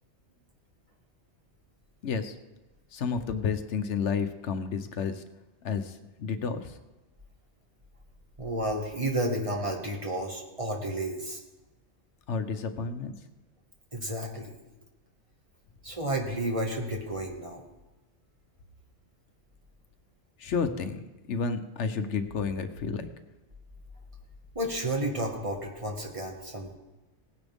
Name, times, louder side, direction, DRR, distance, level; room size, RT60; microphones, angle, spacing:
voice 1, 2.0-2.3 2.9-5.2 5.6-5.9 6.2-6.7 12.3-13.1 20.4-21.0 21.3-23.1, left 5 dB, 85° left, 9 dB, 1.2 m, -31 dB
voice 2, 8.4-11.4 13.9-14.5 15.8-17.6 24.6-26.7, right 1 dB, 30° right, 0 dB, 1.8 m, -31 dB
17.5 x 10.0 x 3.6 m, 1.1 s
omnidirectional pair, 1.2 m